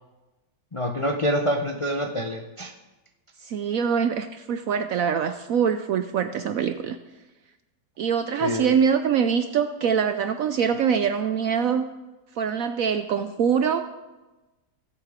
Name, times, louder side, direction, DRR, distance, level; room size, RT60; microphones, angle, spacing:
voice 1, 0.7-2.7 8.4-8.7, equal, 45° left, 2 dB, 0.4 m, -26 dB
voice 2, 3.4-7.0 8.0-11.9 12.4-13.9, right 7 dB, 70° right, 9 dB, 0.8 m, -24 dB
20.0 x 8.4 x 3.6 m, 1.1 s
omnidirectional pair, 1.9 m